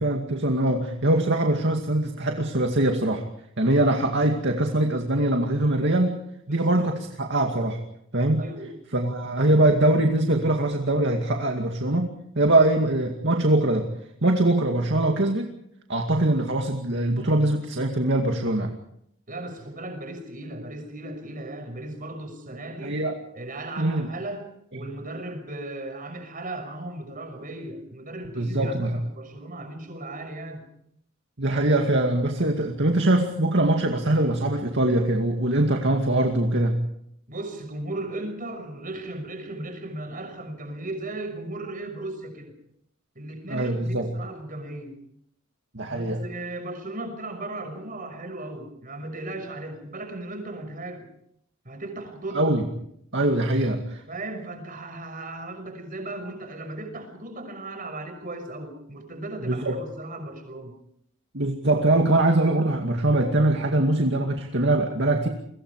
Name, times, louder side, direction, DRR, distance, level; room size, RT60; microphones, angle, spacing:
voice 1, 0.0-3.2 3.6-6.2 6.5-7.8 8.1-8.4 8.9-13.9 14.2-15.5 15.9-18.7 22.8-23.2 23.8-24.1 28.4-29.0 31.4-36.8 43.5-44.1 45.7-46.2 52.3-52.6 53.1-54.0 59.4-59.8 61.3-65.3, right 1 dB, 55° right, 3 dB, 2.3 m, -22 dB
voice 2, 6.5-6.9 8.4-8.7 19.3-23.0 23.3-30.6 37.3-42.5 43.1-45.0 45.9-51.1 51.6-52.4 54.1-60.7, right 2 dB, 40° right, 6 dB, 6.2 m, -36 dB
30.0 x 23.5 x 4.9 m, 0.72 s
head